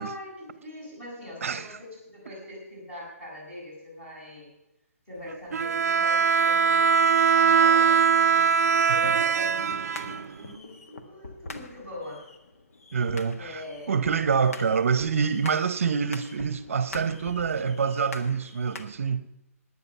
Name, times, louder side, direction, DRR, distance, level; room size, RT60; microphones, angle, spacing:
voice 1, 0.0-4.5 5.1-6.9 7.3-12.3 13.4-14.0, left 1 dB, 15° left, 6.4 m, -42 dB
Bowed string instrument, 5.5-10.6, right 6 dB, 90° right, 0.5 m, -21 dB
sound 1, 9.7-18.8, left 3 dB, 65° left, 1.7 m, -44 dB
voice 2, 12.9-13.6 13.9-19.3, right 6 dB, 60° right, 0.8 m, -26 dB
19.5 x 9.7 x 5.5 m
hypercardioid pair, 180°, 8 cm